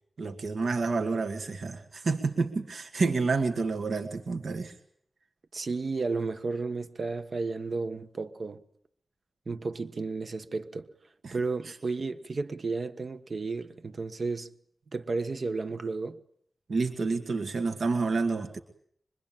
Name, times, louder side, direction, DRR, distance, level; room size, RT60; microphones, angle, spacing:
voice 1, 0.2-4.7 11.2-11.4 16.7-18.6, right 4 dB, 70° right, 2.1 m, -29 dB
voice 2, 5.5-8.6 9.5-10.9 11.3-14.5 14.9-16.2, right 3 dB, 50° right, 1.3 m, -33 dB
25.0 x 23.0 x 9.0 m
wide cardioid pair, 135°, 0 cm